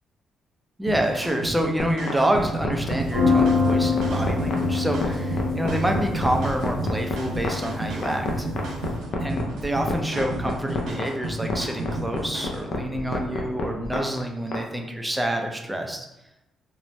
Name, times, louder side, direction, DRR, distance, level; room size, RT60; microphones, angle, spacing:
voice 1, 0.8-8.5 9.2-16.1, right 1 dB, 10° right, 3 dB, 0.4 m, -27 dB
sound 1, 0.9-12.7, right 2 dB, 85° right, 0.5 m, -33 dB
sound 2, 1.8-14.6, left 3 dB, 65° left, 0.4 m, -29 dB
sound 3, 3.0-8.9, left 3 dB, 85° left, 1.0 m, -25 dB
2.6 x 2.1 x 3.1 m, 0.91 s
cardioid pair, 90°, 0 cm